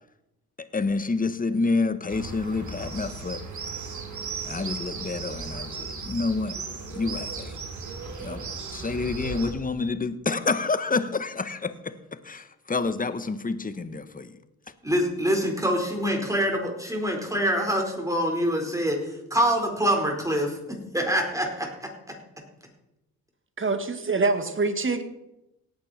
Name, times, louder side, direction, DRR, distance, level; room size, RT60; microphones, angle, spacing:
voice 1, 0.6-3.4 4.4-6.6 6.9-7.5 8.2-11.9 12.2-14.3, left 3 dB, 20° left, 12 dB, 1.3 m, -28 dB
sound 1, 2.1-9.5, right 4 dB, 45° right, 3.0 m, -36 dB
voice 2, 14.8-22.2, equal, 10° right, 1 dB, 4.5 m, -25 dB
voice 3, 23.6-25.0, right 3 dB, 30° right, 8 dB, 1.9 m, -25 dB
18.0 x 8.7 x 4.4 m, 0.91 s
hypercardioid pair, 50°, 39 cm